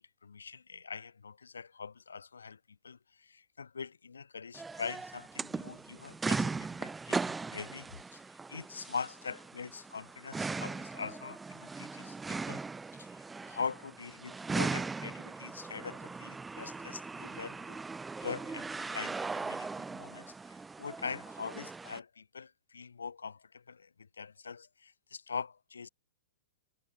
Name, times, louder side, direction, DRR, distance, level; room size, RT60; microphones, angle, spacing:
voice 1, 0.0-8.2 8.5-12.6 12.9-17.8 18.2-25.9, left 5 dB, 75° left, 0.7 m, -43 dB
sound 1, 4.5-22.0, right 4 dB, 10° right, 0.4 m, -39 dB
figure-of-eight pair, 105°, 0 cm